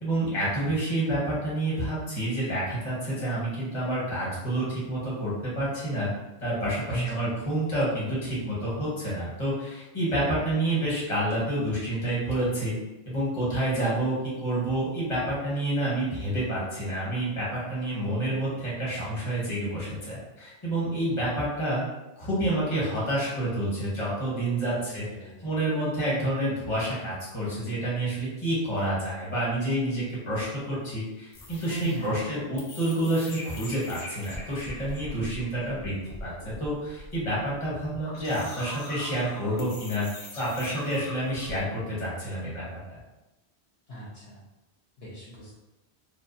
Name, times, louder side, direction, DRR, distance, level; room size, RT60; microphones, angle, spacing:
voice 1, 0.0-6.1 6.4-12.7 13.1-21.8 22.2-25.0 25.4-35.9 36.2-40.1 40.4-42.6 42.9-43.0, right 1 dB, 30° left, -7 dB, 1.0 m, -28 dB
voice 2, 6.9-7.3 24.8-25.6 31.8-32.2 43.9-44.4 45.0-45.5, equal, 65° left, -6 dB, 0.9 m, -38 dB
sound 1, 31.3-41.6, left 1 dB, 50° left, 0.5 m, -42 dB
2.4 x 2.4 x 2.6 m, 1.0 s
omnidirectional pair, 1.1 m